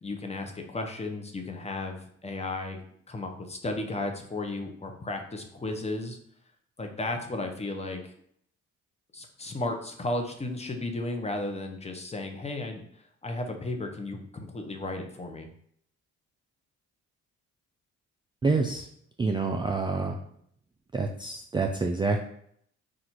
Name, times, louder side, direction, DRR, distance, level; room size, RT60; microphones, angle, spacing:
voice 1, 0.0-2.8 3.1-6.2 6.8-8.0 9.1-12.8 13.2-15.5, left 2 dB, 20° left, 4 dB, 0.7 m, -34 dB
voice 2, 18.4-18.9 19.2-20.1 20.9-22.2, right 3 dB, 15° right, 3 dB, 0.3 m, -27 dB
4.1 x 2.5 x 4.4 m, 0.67 s
cardioid pair, 90°, 30 cm